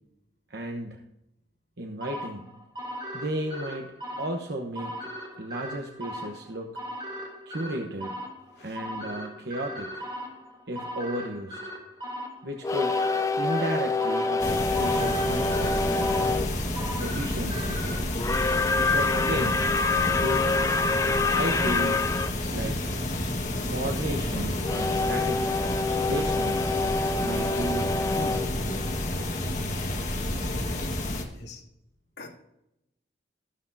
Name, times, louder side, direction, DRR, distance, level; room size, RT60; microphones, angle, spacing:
voice 1, 0.5-1.0 1.8-2.5 3.1-3.9 4.2-5.0 5.4-6.8 7.5-8.1 8.6-10.1 10.7-11.6 12.4-13.0 13.4-16.3 17.0-17.9 18.8-19.7 20.2-20.6 21.3-22.1 22.5-23.0 23.6-25.6 26.1-26.7 27.2-28.9, right 1 dB, 60° right, 2 dB, 1.0 m, -34 dB
sound 1, 2.0-18.0, equal, 25° right, 2.8 m, -39 dB
voice 2, 8.5-8.8 31.3-31.6 32.2-32.3, left 3 dB, 65° left, -1 dB, 2.6 m, -45 dB
sound 2, 12.6-16.5 18.2-22.3 24.6-29.5, left 3 dB, 15° left, 0.5 m, -27 dB
sound 3, 14.4-31.2, left 1 dB, 40° left, 1.6 m, -30 dB
14.0 x 13.0 x 2.7 m, 0.85 s
head